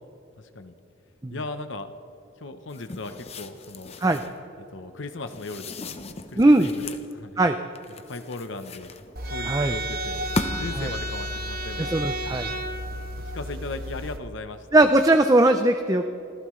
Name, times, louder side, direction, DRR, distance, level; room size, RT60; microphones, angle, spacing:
voice 1, 0.4-0.7 1.3-1.9 2.4-4.0 4.6-7.4 7.9-8.9 9.2-12.6 13.3-14.7, left 2 dB, 70° left, 9 dB, 0.8 m, -38 dB
sound 1, 2.7-4.4 5.3-7.1 7.8-9.4 10.0-10.8, left 2 dB, 30° left, 0.8 m, -36 dB
voice 2, 6.4-6.7 7.4-7.6 9.5-9.7 10.8-10.9 11.8-12.5 14.7-16.1, right 2 dB, 15° right, 7 dB, 0.5 m, -19 dB
sound 2, 9.2-14.2, right 1 dB, 45° right, 1.1 m, -32 dB
26.5 x 15.5 x 3.2 m, 2.9 s
head